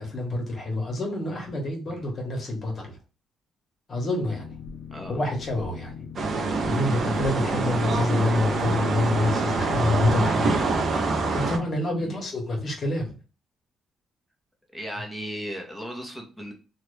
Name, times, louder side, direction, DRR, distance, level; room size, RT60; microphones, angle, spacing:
voice 1, 0.0-2.9 3.9-4.5 5.1-5.9 6.6-10.5 11.3-13.2, left 2 dB, 45° left, 1.4 m, -27 dB
Boat Water vehicle, 4.2-10.3, left 7 dB, 75° left, 0.5 m, -40 dB
sound 1, 6.2-11.6, right 3 dB, 55° right, 0.7 m, -25 dB
voice 2, 14.7-16.5, equal, ahead, 1.1 m, -36 dB
2.8 x 2.5 x 3.3 m
cardioid pair, 90°, 0 cm